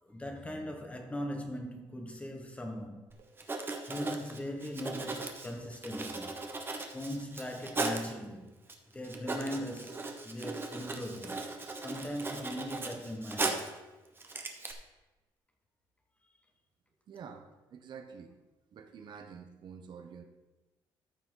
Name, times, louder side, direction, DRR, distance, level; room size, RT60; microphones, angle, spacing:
voice 1, 0.0-3.1 3.8-6.4 6.9-8.5 8.9-11.5 11.7-13.7, equal, 15° left, 1.3 m, -40 dB
Writing, 3.1-3.2 3.4-8.1 8.7-8.8 9.0-13.8 14.2-14.7, right 3 dB, 25° right, 1.1 m, -38 dB
voice 2, 17.1-18.4 18.7-20.2, right 6 dB, 55° right, 0.9 m, -48 dB
14.0 x 5.8 x 3.9 m
cardioid pair, 120°, 9 cm